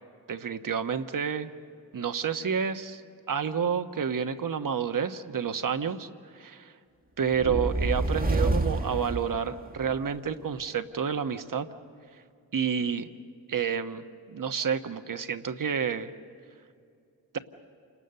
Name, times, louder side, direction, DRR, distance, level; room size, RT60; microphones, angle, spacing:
voice 1, 0.3-1.5 1.9-3.0 3.3-6.7 7.2-11.7 12.5-13.1 13.5-16.1, right 7 dB, 55° right, 8 dB, 1.2 m, -29 dB
sound 1, 7.3-10.0, right 2 dB, 25° right, 1.4 m, -28 dB
28.5 x 19.5 x 6.7 m, 2.4 s
cardioid pair, 50°, 39 cm